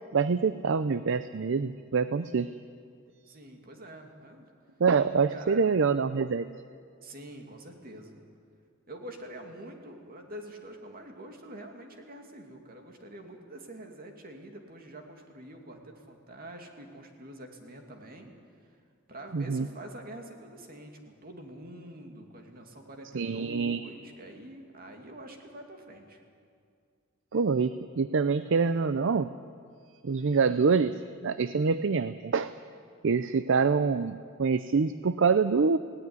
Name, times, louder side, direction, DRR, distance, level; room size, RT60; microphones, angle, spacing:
voice 1, 0.1-2.5 4.8-6.5 19.3-19.7 23.1-23.8 27.3-29.3 30.0-30.9 31.2-32.5 33.0-35.8, right 5 dB, 65° right, 13 dB, 0.5 m, -25 dB
voice 2, 3.3-4.5 5.3-5.6 7.0-8.2 8.9-18.3 18.6-18.8 19.1-26.2, right 1 dB, 45° right, 3 dB, 2.6 m, -46 dB
18.5 x 17.0 x 9.7 m, 2.3 s
head